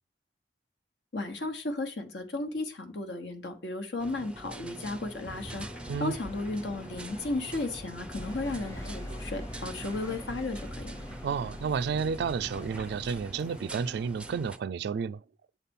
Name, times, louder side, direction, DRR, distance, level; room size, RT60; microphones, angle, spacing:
voice 1, 1.1-5.7 6.0-11.0, left 2 dB, 75° left, 1.2 m, -34 dB
sound 1, 4.0-14.6, right 1 dB, 5° right, 0.5 m, -44 dB
Aircraft / Engine, 5.2-13.8, left 1 dB, 45° left, 1.1 m, -48 dB
Sitting inside of a Gautrain Bus South Africa, 8.1-13.2, left 1 dB, 20° left, 1.0 m, -43 dB
voice 2, 11.2-15.2, right 6 dB, 65° right, 0.3 m, -31 dB
7.3 x 4.2 x 5.3 m
head